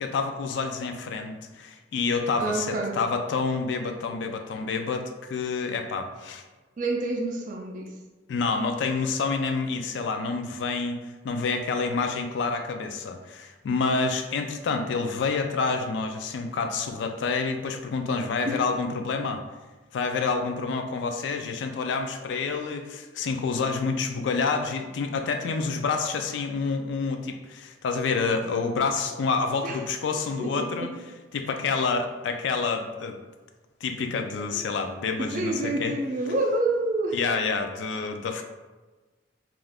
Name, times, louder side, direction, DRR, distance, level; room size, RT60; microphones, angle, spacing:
voice 1, 0.0-6.4 8.3-19.4 19.9-30.9 31.3-33.2 33.8-35.9 37.1-38.4, left 4 dB, 70° left, 5 dB, 0.3 m, -28 dB
voice 2, 2.4-3.0 6.8-7.9 18.5-18.6 29.6-29.8 30.4-30.9 35.2-37.2, right 2 dB, 40° right, 2 dB, 0.3 m, -28 dB
2.4 x 2.3 x 3.4 m, 1.3 s
head